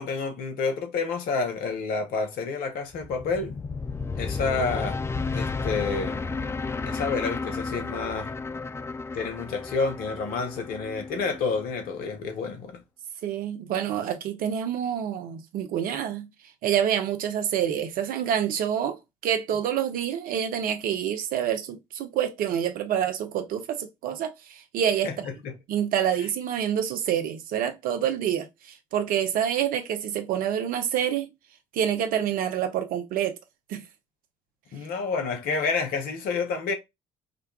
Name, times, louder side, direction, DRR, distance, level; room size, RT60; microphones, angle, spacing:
voice 1, 0.0-3.6 4.2-5.0 5.3-6.2 6.9-8.3 9.1-12.8 25.0-25.1 25.4-25.5 34.7-36.7, left 4 dB, 65° left, 0.9 m, -29 dB
sound 1, 2.9-12.1, left 4 dB, 15° left, 0.3 m, -33 dB
voice 2, 13.2-16.3 16.6-25.3 25.7-31.3 31.7-33.4 33.7-33.8, right 9 dB, 60° right, 0.7 m, -27 dB
4.9 x 2.2 x 2.3 m
hypercardioid pair, 50°, 17 cm